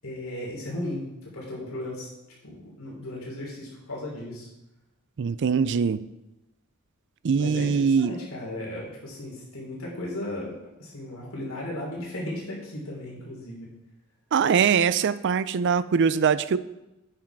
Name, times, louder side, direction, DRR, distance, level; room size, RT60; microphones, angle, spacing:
voice 1, 0.0-1.1 1.3-2.1 2.4-4.5 7.4-13.7, left 1 dB, 85° left, -3 dB, 3.2 m, -36 dB
voice 2, 5.2-6.1 7.2-8.2 14.3-16.6, right 6 dB, 60° right, 16 dB, 0.4 m, -22 dB
8.6 x 6.2 x 4.6 m, 0.95 s
head